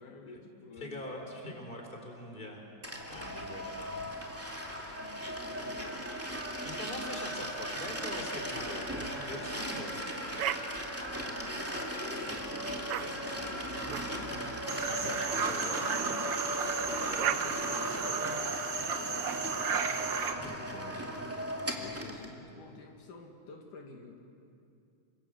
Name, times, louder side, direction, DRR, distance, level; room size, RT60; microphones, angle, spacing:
voice 1, 0.0-1.1 4.7-5.9 10.9-14.4 14.9-15.3 17.2-18.5 18.8-19.9 20.4-21.1 21.8-24.2, left 4 dB, 80° left, 1 dB, 3.7 m, -49 dB
voice 2, 0.8-2.7 3.1-4.1 6.6-10.2 14.9-17.4 18.0-18.3, left 1 dB, 15° left, 2 dB, 4.3 m, -43 dB
sound 1, 2.8-22.3, equal, 5° right, 2.1 m, -37 dB
sound 2, 10.4-10.6 11.6-12.1 12.9-13.0 13.9-14.1 14.9-15.1 16.6-16.7 17.2-17.4, right 11 dB, 75° right, 1.3 m, -34 dB
sound 3, 14.7-20.3, right 6 dB, 50° right, 1.6 m, -34 dB
28.5 x 25.5 x 7.9 m, 2.6 s
omnidirectional pair, 3.6 m